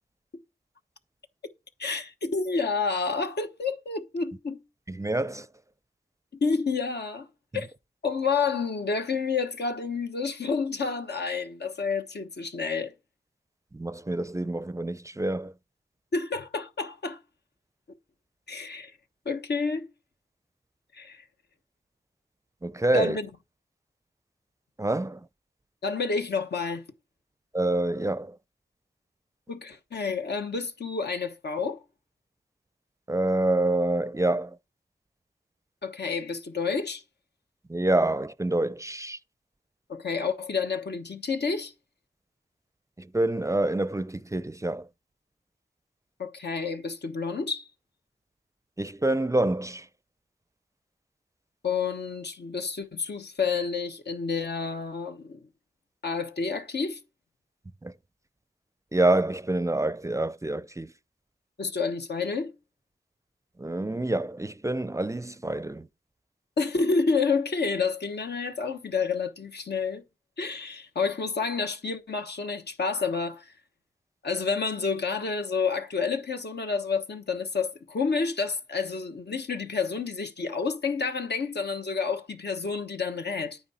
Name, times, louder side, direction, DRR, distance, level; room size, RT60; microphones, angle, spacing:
voice 1, 1.8-4.6 6.4-7.3 7.5-7.7 8.0-12.9 16.1-17.2 18.5-18.9 19.2-19.9 20.9-21.2 22.9-23.3 25.8-26.8 29.5-31.8 35.8-37.0 39.9-41.7 46.2-47.7 51.6-55.5 56.0-57.0 61.6-62.5 66.6-70.0 70.4-73.5 74.2-83.6, left 4 dB, 75° left, 1.1 m, -29 dB
voice 2, 4.9-5.5 13.7-15.5 22.6-23.2 24.8-25.2 27.5-28.4 33.1-34.6 37.7-39.2 43.0-44.9 48.8-49.9 57.8-57.9 58.9-60.9 63.6-65.9, right 2 dB, 15° right, 0.4 m, -27 dB
9.4 x 9.2 x 4.2 m
wide cardioid pair, 55°, 17 cm